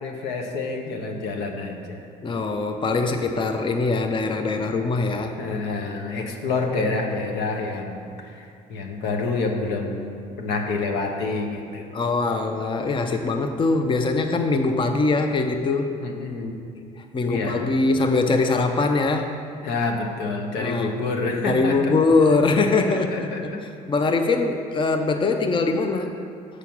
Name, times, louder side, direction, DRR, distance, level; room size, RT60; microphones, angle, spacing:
voice 1, 0.0-2.1 5.4-11.9 16.0-16.6 17.2-17.7 19.6-21.9 22.9-23.6, left 3 dB, 80° left, 2 dB, 0.9 m, -28 dB
voice 2, 2.2-5.4 11.9-15.9 17.0-19.4 20.6-21.0 21.5-23.3 23.9-26.1, left 3 dB, 30° left, 6 dB, 0.6 m, -22 dB
6.9 x 5.0 x 5.9 m, 2.4 s
supercardioid pair, 75°, 17 cm